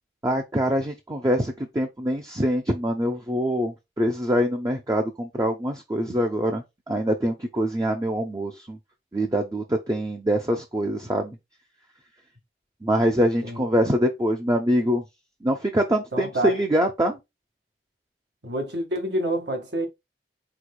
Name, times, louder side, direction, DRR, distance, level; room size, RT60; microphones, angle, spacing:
voice 1, 0.2-8.8 9.1-11.4 12.8-15.0 15.4-17.2, equal, 20° right, 0.7 m, -24 dB
voice 2, 16.1-16.6 18.4-19.9, right 1 dB, 75° right, 1.9 m, -27 dB
4.8 x 4.5 x 2.2 m
head